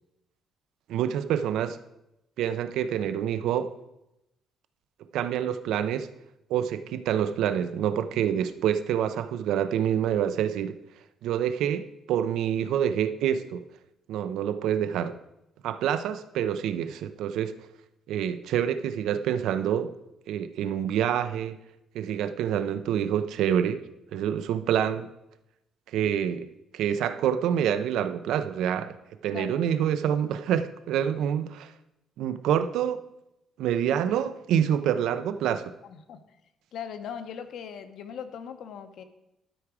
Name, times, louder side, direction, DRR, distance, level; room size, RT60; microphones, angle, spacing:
voice 1, 0.9-1.8 2.4-3.7 5.1-6.1 6.5-10.8 11.2-13.6 14.1-15.1 15.6-17.6 18.1-19.9 20.3-21.6 21.9-23.9 24.1-25.1 25.9-26.5 26.7-28.9 29.2-31.7 32.2-33.0 33.6-35.7, right 9 dB, 85° right, 12 dB, 0.5 m, -27 dB
voice 2, 35.8-36.2 36.7-39.0, left 7 dB, 65° left, 9 dB, 0.7 m, -39 dB
12.0 x 4.8 x 4.8 m, 0.88 s
cardioid pair, 160°, 0 cm